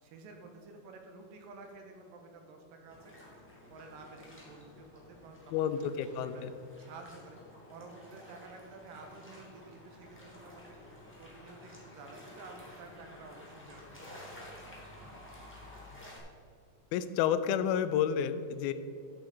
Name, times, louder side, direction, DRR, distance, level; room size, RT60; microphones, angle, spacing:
voice 1, 0.0-3.1 3.7-6.4 6.8-7.4 7.7-10.8 11.2-14.4, right 3 dB, 75° right, 4 dB, 2.8 m, -51 dB
sound 1, 2.9-16.2, left 1 dB, 5° left, 1.4 m, -52 dB
voice 2, 5.5-6.5 16.9-18.7, left 9 dB, 90° left, 12 dB, 2.4 m, -30 dB
12.5 x 7.7 x 4.3 m, 2.5 s
omnidirectional pair, 4.2 m